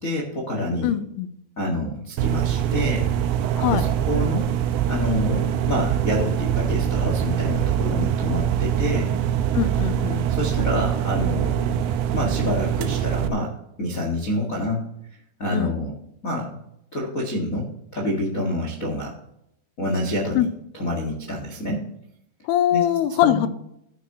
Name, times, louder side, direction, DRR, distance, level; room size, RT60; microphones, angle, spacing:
voice 1, 0.0-1.0 1.6-3.1 3.7-4.5 4.9-9.1 10.3-11.8 12.1-13.5 13.8-14.8 15.4-15.9 16.2-16.6 16.9-19.1 19.8-20.5 20.7-21.8 22.7-22.8 23.2-23.5, left 1 dB, 40° left, -2 dB, 1.2 m, -27 dB
voice 2, 0.8-1.3 3.6-3.8 9.5-10.3 15.5-15.8 20.4-20.5 22.5-23.5, left 11 dB, 80° left, 13 dB, 2.6 m, -22 dB
sound 1, 2.2-13.3, right 10 dB, 80° right, 2.6 m, -23 dB
14.0 x 9.4 x 3.0 m, 0.76 s
omnidirectional pair, 4.7 m